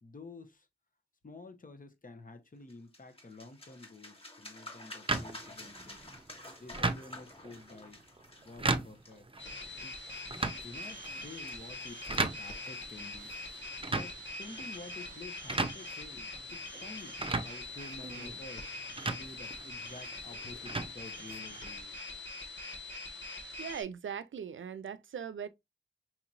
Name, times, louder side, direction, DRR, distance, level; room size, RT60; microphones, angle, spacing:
voice 1, 0.0-0.7 1.2-6.0 6.6-8.0 8.4-9.3 9.8-10.0 10.6-13.3 13.9-18.7 19.1-21.9, left 3 dB, 45° left, 1.1 m, -50 dB
sound 1, 2.7-10.2, left 1 dB, 30° left, 1.5 m, -50 dB
sound 2, 5.1-21.7, right 3 dB, 25° right, 0.7 m, -38 dB
sound 3, 9.4-23.8, left 2 dB, 70° left, 1.7 m, -43 dB
voice 2, 23.6-25.5, right 7 dB, 90° right, 0.5 m, -40 dB
5.9 x 2.9 x 2.5 m
cardioid pair, 50°, 20 cm